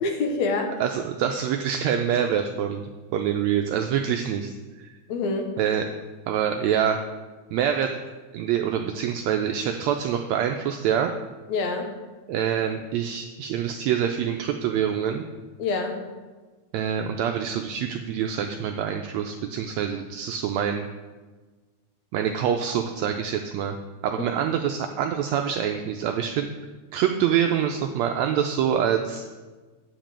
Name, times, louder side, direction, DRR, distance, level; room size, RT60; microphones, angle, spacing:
voice 1, 0.0-0.7 5.1-5.5 11.5-11.9 15.6-16.0 24.2-24.3, left 3 dB, 70° left, 4 dB, 2.1 m, -26 dB
voice 2, 0.8-4.5 4.8-4.9 5.6-5.9 6.3-7.0 7.5-7.9 8.3-11.1 12.3-15.2 16.7-20.9 22.1-23.8 24.0-26.5 26.9-29.2, right 9 dB, 80° right, 5 dB, 1.6 m, -25 dB
9.3 x 5.2 x 7.4 m, 1.3 s
omnidirectional pair, 3.6 m